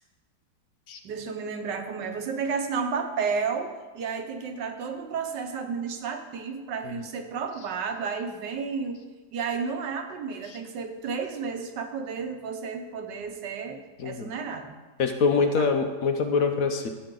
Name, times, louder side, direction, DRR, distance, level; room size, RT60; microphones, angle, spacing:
voice 1, 1.0-9.0 9.3-14.8 15.4-15.8, right 5 dB, 90° right, 6 dB, 1.6 m, -32 dB
voice 2, 15.0-16.9, left 5 dB, 60° left, 6 dB, 1.1 m, -24 dB
14.0 x 7.9 x 3.9 m, 1.3 s
omnidirectional pair, 1.8 m